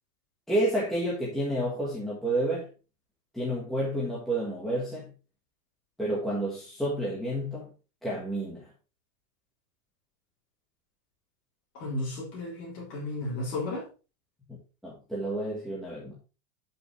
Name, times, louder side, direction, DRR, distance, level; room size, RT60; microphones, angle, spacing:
voice 1, 0.5-2.7 3.3-5.1 6.0-7.7 8.0-8.7 14.5-14.6 14.8-16.1, right 1 dB, ahead, 1.5 m, -30 dB
voice 2, 11.7-13.8, left 2 dB, 25° left, 3.5 m, -33 dB
11.5 x 5.8 x 3.3 m
supercardioid pair, 180°, 45 cm